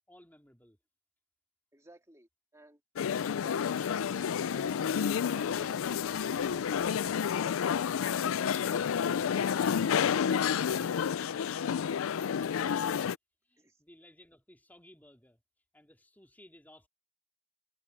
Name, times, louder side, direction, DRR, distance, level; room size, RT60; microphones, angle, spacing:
voice 1, 0.1-0.8 13.4-15.4 15.7-16.9, left 1 dB, 10° left, 3.0 m, -59 dB
voice 2, 1.7-2.8 3.3-3.8 4.5-10.0 13.6-13.8, right 1 dB, 15° right, 2.6 m, -55 dB
sound 1, 3.0-13.2, left 7 dB, 85° left, 0.4 m, -30 dB
head